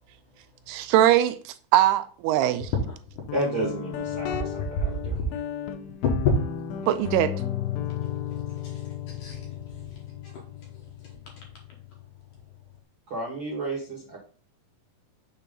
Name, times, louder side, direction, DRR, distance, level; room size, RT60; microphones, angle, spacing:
voice 1, 0.7-2.7 6.9-7.3, right 12 dB, 85° right, 2.5 m, -21 dB
Guitar, 3.3-12.8, left 9 dB, 90° left, 2.8 m, -34 dB
voice 2, 3.3-5.1 13.1-14.3, right 2 dB, 50° right, 1.5 m, -31 dB
voice 3, 4.1-4.6 5.1-5.2 6.0-6.3 8.0-8.4 8.6-9.6 10.2-10.3, left 5 dB, 65° left, 2.1 m, -30 dB
6.9 x 2.9 x 5.1 m
omnidirectional pair, 4.7 m